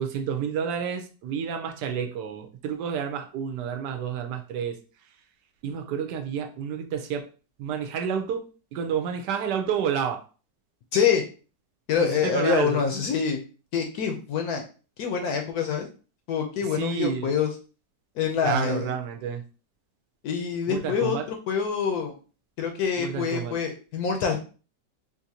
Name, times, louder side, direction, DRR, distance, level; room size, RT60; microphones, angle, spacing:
voice 1, 0.0-4.8 5.6-7.3 7.6-10.2 12.0-12.8 16.6-17.3 18.4-19.4 20.7-21.3 23.0-23.6, right 7 dB, 75° right, 5 dB, 1.1 m, -30 dB
voice 2, 10.9-11.2 11.9-13.4 13.7-14.6 15.0-15.9 16.3-17.5 18.2-18.9 20.2-22.1 22.6-24.4, left 7 dB, 70° left, 4 dB, 1.0 m, -26 dB
3.9 x 2.5 x 2.7 m, 0.36 s
omnidirectional pair, 1.9 m